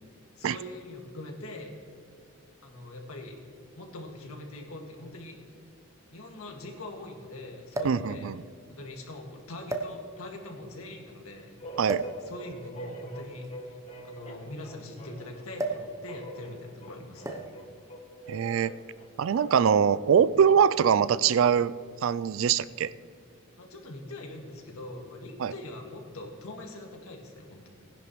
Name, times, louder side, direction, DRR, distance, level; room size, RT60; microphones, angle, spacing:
voice 1, 0.4-1.7 2.6-3.4 3.8-5.4 6.1-8.3 8.7-11.6 12.2-13.8 14.0-17.4 23.6-27.7, left 1 dB, 85° left, 1 dB, 1.9 m, -42 dB
sound 1, 4.0-4.1 5.2-5.3 5.5-5.6 7.7-8.1 8.9-9.1 9.7-10.4 11.9-12.2 13.3-15.0 15.6-15.9 16.2-16.5 17.2-17.6 18.6-18.8, right 2 dB, 15° right, 0.7 m, -34 dB
voice 2, 7.8-8.4 11.8-12.0 18.3-18.7 19.2-21.7 22.0-22.9 25.4-25.5, right 7 dB, 65° right, 17 dB, 0.3 m, -23 dB
sound 2, 11.6-19.8, right 1 dB, 30° left, 1.0 m, -45 dB
18.5 x 10.5 x 3.1 m, 2.3 s
head